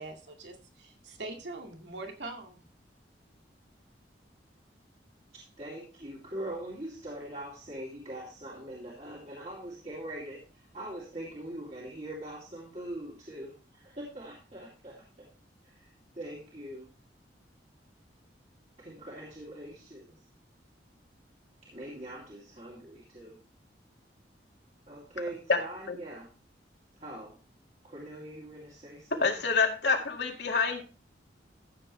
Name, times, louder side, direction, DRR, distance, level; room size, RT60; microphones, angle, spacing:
voice 1, 0.0-2.6, right 2 dB, 80° right, 3 dB, 2.3 m, -42 dB
voice 2, 5.3-15.3 15.6-16.9 18.8-20.2 21.6-23.4 24.9-26.3 27.0-27.4 27.8-29.5, right 1 dB, 35° right, -5 dB, 2.6 m, -42 dB
voice 3, 29.2-30.8, left 4 dB, 75° left, 2 dB, 2.0 m, -27 dB
14.0 x 7.7 x 3.3 m, 0.34 s
head